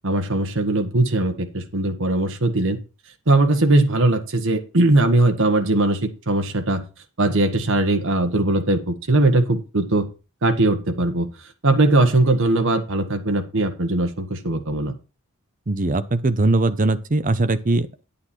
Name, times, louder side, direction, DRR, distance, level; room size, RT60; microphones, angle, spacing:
voice 1, 0.0-2.8 3.3-6.8 7.2-10.1 10.4-11.3 11.6-14.9, right 2 dB, 65° right, 1.4 m, -20 dB
voice 2, 15.7-18.0, right 2 dB, 40° right, 0.8 m, -21 dB
9.9 x 8.5 x 4.4 m
head